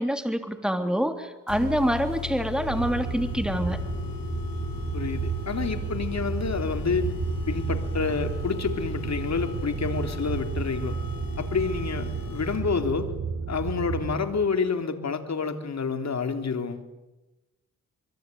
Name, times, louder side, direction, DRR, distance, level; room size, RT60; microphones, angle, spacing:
voice 1, 0.0-3.8, equal, ahead, 7 dB, 3.4 m, -26 dB
sound 1, 1.5-12.9, left 6 dB, 90° left, 6.7 m, -37 dB
sound 2, 2.7-14.2, right 6 dB, 75° right, 3.8 m, -32 dB
voice 2, 4.9-7.1 7.5-11.0 11.4-13.1 13.5-16.9, left 5 dB, 55° left, 7 dB, 3.4 m, -28 dB
26.0 x 24.0 x 9.5 m, 1.0 s
cardioid pair, 60°, 33 cm